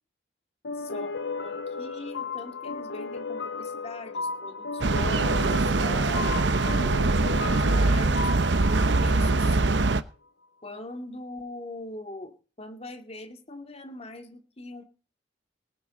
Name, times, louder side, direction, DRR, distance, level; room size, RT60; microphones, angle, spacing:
sound 1, 0.6-9.9, left 4 dB, 80° left, 0.8 m, -35 dB
voice 1, 0.7-1.1 1.4-6.5 6.8-8.3 8.7-9.9 10.6-14.8, left 2 dB, 35° left, 6 dB, 2.4 m, -41 dB
sound 2, 4.8-10.0, right 3 dB, 75° right, 0.8 m, -23 dB
19.5 x 9.1 x 4.3 m, 0.37 s
head